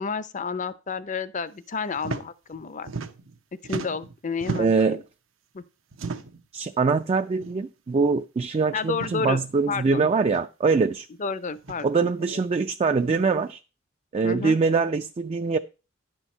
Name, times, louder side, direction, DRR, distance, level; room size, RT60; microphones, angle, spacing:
voice 1, 0.0-2.9 3.6-5.0 5.5-5.6 8.7-10.1 11.2-12.4 14.2-14.6, left 5 dB, 40° left, 0.6 m, -31 dB
sound 1, 2.0-2.2 2.5-3.4 3.6-4.9 5.9-6.5 7.4-7.6 7.9-8.0 8.9-9.2 10.3-10.4 11.6-11.9 12.9-13.2, right 4 dB, 90° right, 0.8 m, -34 dB
voice 2, 4.6-5.0 6.5-11.1 11.8-13.6 14.1-15.6, right 4 dB, 30° right, 0.3 m, -23 dB
10.5 x 4.5 x 5.4 m
head